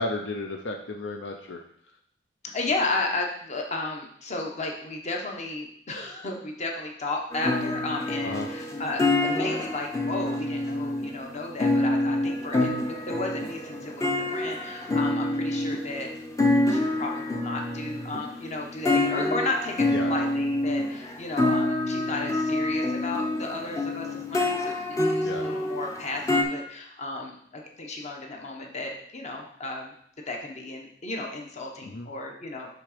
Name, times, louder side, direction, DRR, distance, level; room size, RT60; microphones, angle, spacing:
voice 1, 0.0-1.6 8.2-8.5 19.9-20.1 25.2-25.4 31.8-32.1, left 2 dB, 75° left, 3 dB, 0.6 m, -33 dB
voice 2, 2.5-16.1 16.7-29.9 30.3-32.7, left 2 dB, 40° left, 1 dB, 1.1 m, -33 dB
sound 1, 7.3-26.4, left 2 dB, 20° left, 0.7 m, -27 dB
6.6 x 3.7 x 5.0 m, 0.66 s
head